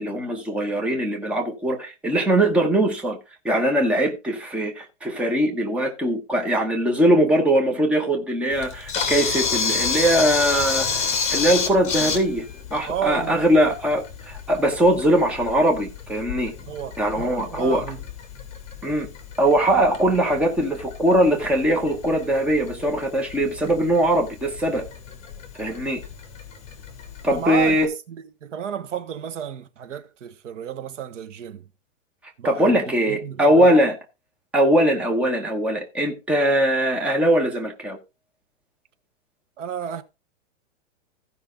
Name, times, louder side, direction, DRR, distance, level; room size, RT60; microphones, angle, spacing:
voice 1, 0.0-3.2 3.4-12.5 12.7-16.5 17.0-17.8 18.8-19.1 19.4-24.8 25.6-26.0 27.2-27.9 32.4-34.0 34.5-38.0, right 1 dB, 5° right, 0.9 m, -21 dB
Camera, 8.5-27.8, left 5 dB, 15° left, 2.5 m, -31 dB
voice 2, 12.9-13.4 16.7-18.0 20.2-20.3 27.3-31.7 32.4-33.8 39.6-40.0, right 9 dB, 75° right, 1.5 m, -32 dB
15.0 x 5.6 x 3.8 m
supercardioid pair, 165°, 38 cm